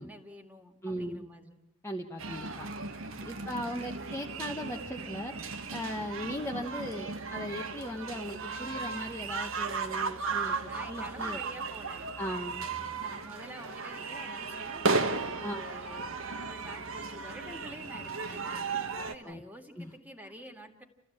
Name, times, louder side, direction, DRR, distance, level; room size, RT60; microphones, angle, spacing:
voice 1, 0.0-1.6 3.1-3.6 10.3-12.1 13.0-16.2 16.5-20.8, equal, 5° right, 5 dB, 2.1 m, -49 dB
voice 2, 0.8-1.3 1.8-2.7 3.2-5.3 5.7-10.5 10.8-11.4 12.2-12.7 15.4-15.6 19.2-19.4 19.8-19.9, equal, 10° left, 0 dB, 1.1 m, -38 dB
sound 1, 2.2-19.1, right 4 dB, 65° right, 1.4 m, -35 dB
28.5 x 15.0 x 8.7 m, 0.90 s
head